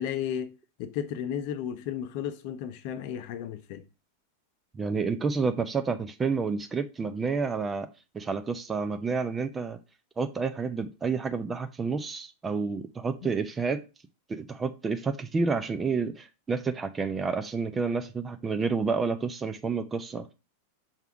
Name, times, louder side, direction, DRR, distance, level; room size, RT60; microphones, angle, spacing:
voice 1, 0.0-3.8 13.2-13.3, left 9 dB, 45° left, 0.7 m, -34 dB
voice 2, 4.7-7.9 8.1-9.8 10.2-13.8 14.3-20.3, right 4 dB, 15° right, 0.5 m, -29 dB
5.7 x 3.5 x 4.8 m
figure-of-eight pair, 90°, 0 cm